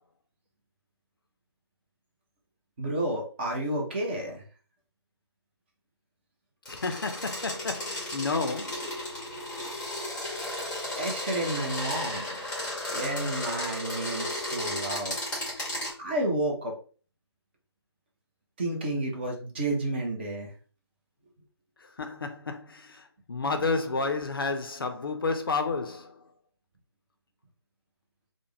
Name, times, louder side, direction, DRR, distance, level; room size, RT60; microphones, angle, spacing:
voice 1, 2.8-4.4 11.0-12.2 12.9-15.2 16.0-16.7 18.6-20.5, right 1 dB, 25° right, 0.6 m, -31 dB
voice 2, 6.7-9.0 21.8-26.2, left 3 dB, 55° left, 0.4 m, -31 dB
sound 1, 6.7-15.9, left 1 dB, 5° left, 0.8 m, -34 dB
3.3 x 2.1 x 3.2 m
figure-of-eight pair, 150°, 14 cm